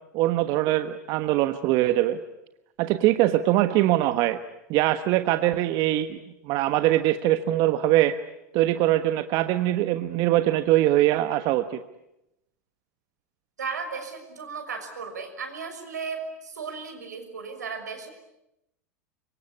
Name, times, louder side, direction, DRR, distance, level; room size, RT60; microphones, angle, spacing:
voice 1, 0.1-2.2 2.8-4.4 4.7-6.2 6.4-8.1 8.5-11.8, right 14 dB, 50° right, 10 dB, 1.2 m, -22 dB
voice 2, 13.6-18.1, right 5 dB, 90° right, 6 dB, 6.0 m, -35 dB
25.0 x 23.5 x 9.8 m, 0.87 s
hypercardioid pair, 100°, 9 cm